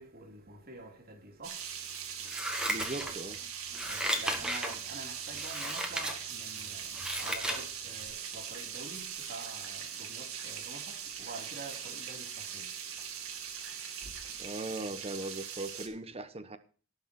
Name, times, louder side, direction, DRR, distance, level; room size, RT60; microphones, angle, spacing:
voice 1, 0.0-2.8 3.6-14.5, right 2 dB, 45° right, 2.7 m, -48 dB
sound 1, 1.4-15.9, right 8 dB, 65° right, 2.3 m, -41 dB
Scissors, 2.3-3.4 3.7-4.8 5.3-6.2 6.6-7.6 8.0-8.1, right 1 dB, 5° right, 1.9 m, -34 dB
voice 2, 2.7-3.4 14.4-16.6, right 2 dB, 25° right, 1.0 m, -39 dB
18.0 x 6.6 x 4.3 m
head